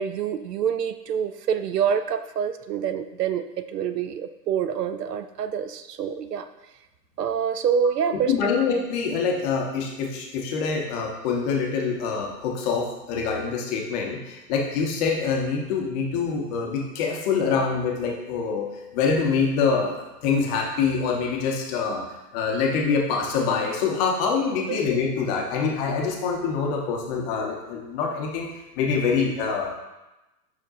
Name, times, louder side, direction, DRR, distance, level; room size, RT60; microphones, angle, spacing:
voice 1, 0.0-6.5 7.2-8.3 24.7-24.8, right 7 dB, 70° right, 10 dB, 0.6 m, -26 dB
voice 2, 8.3-18.7 18.9-22.0 22.3-28.5 28.8-29.7, left 5 dB, 25° left, 0 dB, 0.7 m, -25 dB
6.5 x 5.9 x 2.5 m, 1.0 s
hypercardioid pair, 130°, 50 cm